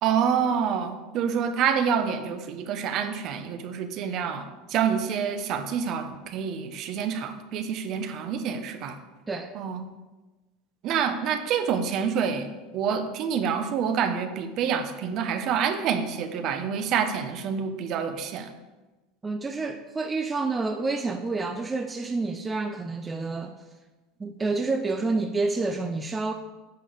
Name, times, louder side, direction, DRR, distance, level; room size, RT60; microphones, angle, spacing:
voice 1, 0.0-9.0 9.5-9.8 10.8-12.5 12.7-18.5, right 7 dB, 50° right, 8 dB, 1.0 m, -27 dB
voice 2, 19.2-23.5 24.2-26.3, right 3 dB, 15° right, 6 dB, 0.6 m, -28 dB
9.1 x 5.3 x 6.6 m, 1.2 s
supercardioid pair, 125°, 0 cm